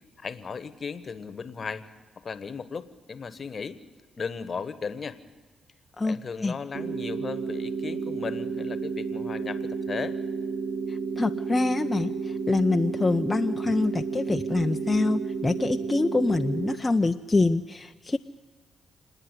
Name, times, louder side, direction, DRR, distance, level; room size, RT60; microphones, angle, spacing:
voice 1, 0.2-1.8 2.2-3.8 4.2-5.2 6.0-10.1, left 5 dB, 45° left, 14 dB, 1.2 m, -36 dB
voice 2, 6.0-6.5 10.9-18.2, left 3 dB, 20° left, 6 dB, 0.6 m, -25 dB
sound 1, 6.7-16.8, right 5 dB, 85° right, 1.7 m, -31 dB
27.0 x 9.9 x 9.7 m, 1.5 s
supercardioid pair, 65°, 0 cm